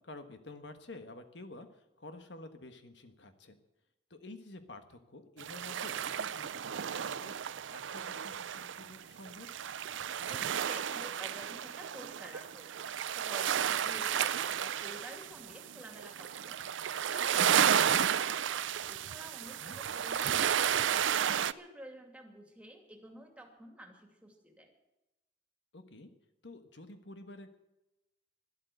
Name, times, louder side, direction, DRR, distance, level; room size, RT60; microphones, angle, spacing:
voice 1, 0.0-3.6 4.1-9.5 19.4-19.8 25.7-26.1 26.4-27.6, left 2 dB, 70° left, 8 dB, 1.4 m, -50 dB
sound 1, 5.4-21.5, right 8 dB, 90° right, 0.5 m, -32 dB
voice 2, 10.3-16.7 17.1-21.0 21.3-24.7, right 1 dB, 5° right, 2 dB, 2.6 m, -51 dB
12.5 x 12.0 x 7.9 m, 0.96 s
head